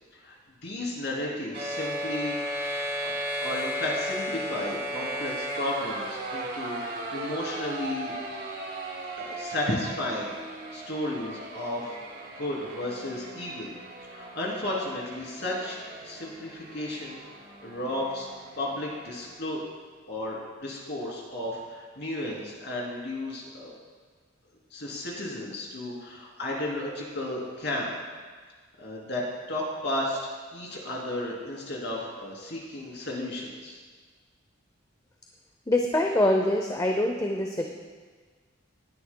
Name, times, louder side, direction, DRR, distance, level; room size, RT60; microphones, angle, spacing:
voice 1, 0.6-2.6 3.0-6.8 7.1-8.1 9.2-10.4 10.7-12.0 12.4-13.7 14.0-17.2 17.6-18.3 18.6-19.6 20.1-23.7 24.7-28.0 28.8-29.2 29.5-30.2 30.5-33.8, left 1 dB, 60° left, -3 dB, 2.9 m, -33 dB
sound 1, 1.5-19.3, equal, 55° right, 1.7 m, -36 dB
voice 2, 35.7-37.6, left 1 dB, 15° left, 2 dB, 0.6 m, -24 dB
18.0 x 9.6 x 2.2 m, 1.5 s
head